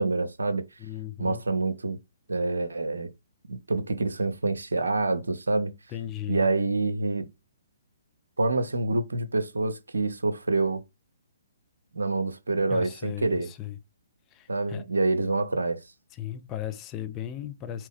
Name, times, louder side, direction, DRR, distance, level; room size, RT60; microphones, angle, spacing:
voice 1, 0.0-0.6 1.2-2.0 2.3-3.1 3.5-5.7 6.3-7.3 8.4-10.8 11.9-13.5 14.5-15.8, right 3 dB, 70° right, 0.7 m, -27 dB
voice 2, 0.8-1.4 5.9-6.5 12.7-13.8 14.3-14.8 16.1-17.9, left 11 dB, 20° left, 0.5 m, -36 dB
4.5 x 3.0 x 3.4 m
figure-of-eight pair, 125°, 0 cm